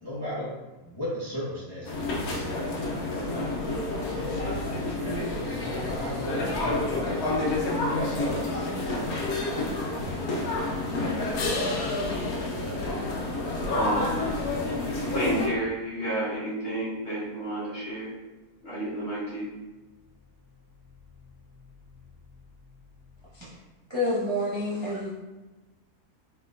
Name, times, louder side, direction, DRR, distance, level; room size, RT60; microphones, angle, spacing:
voice 1, 0.0-3.5 4.1-7.5 7.8-9.3, equal, 15° left, -9 dB, 0.9 m, -37 dB
sound 1, 1.8-15.5, left 2 dB, 65° left, 1.2 m, -29 dB
sound 2, 11.3-13.9 19.7-23.6, left 4 dB, 85° left, 1.2 m, -41 dB
voice 2, 11.7-12.1 13.7-14.2 15.1-18.1 18.6-19.5, right 1 dB, 45° left, -9 dB, 1.9 m, -31 dB
voice 3, 23.9-25.1, left 1 dB, 30° right, -7 dB, 0.5 m, -28 dB
4.6 x 3.8 x 2.5 m, 1.1 s
omnidirectional pair, 1.7 m